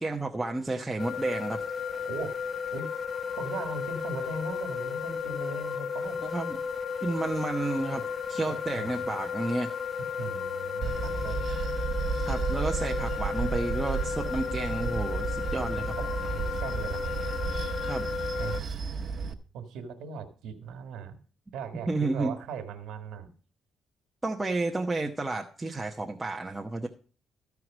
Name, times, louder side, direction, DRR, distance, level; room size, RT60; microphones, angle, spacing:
voice 1, 0.0-1.6 6.2-6.6 7.0-9.7 12.3-15.9 17.6-18.1 21.9-22.4 24.2-26.9, right 2 dB, 15° right, 1 dB, 0.9 m, -31 dB
sound 1, 1.0-18.6, left 6 dB, 45° left, 0.6 m, -34 dB
voice 2, 2.0-2.4 2.7-2.9 3.4-6.2 8.4-9.1 10.1-11.5 16.0-17.1 18.4-18.7 19.5-21.2 21.5-23.3, right 5 dB, 85° right, 7 dB, 1.6 m, -39 dB
Bell / Train, 10.8-19.3, right 5 dB, 50° right, 1.1 m, -33 dB
14.0 x 4.8 x 6.1 m, 0.40 s
cardioid pair, 90°, 0 cm